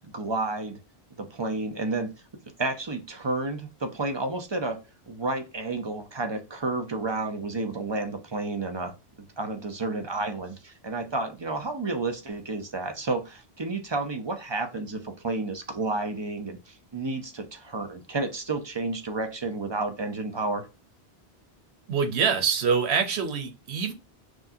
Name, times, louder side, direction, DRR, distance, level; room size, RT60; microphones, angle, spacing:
voice 1, 0.1-0.8 1.2-2.1 2.6-4.8 5.1-8.9 9.4-20.6, right 3 dB, 30° right, 0.6 m, -31 dB
voice 2, 21.9-23.9, right 6 dB, 85° right, 1.1 m, -25 dB
6.1 x 2.2 x 2.7 m
omnidirectional pair, 1.1 m